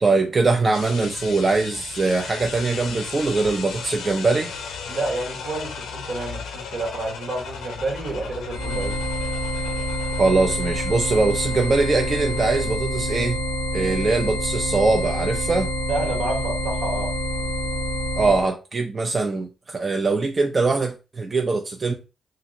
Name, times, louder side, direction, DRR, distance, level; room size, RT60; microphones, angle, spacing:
voice 1, 0.0-4.5 10.2-13.4 13.7-15.7 18.2-21.9, right 3 dB, 45° right, 0.4 m, -22 dB
sound 1, 0.7-12.7, left 5 dB, 85° left, 0.5 m, -36 dB
voice 2, 4.9-9.0 15.9-17.2, right 2 dB, 70° right, 1.1 m, -29 dB
sound 2, 8.5-18.5, equal, 90° right, 1.2 m, -27 dB
2.8 x 2.5 x 2.7 m
supercardioid pair, 45°, 0 cm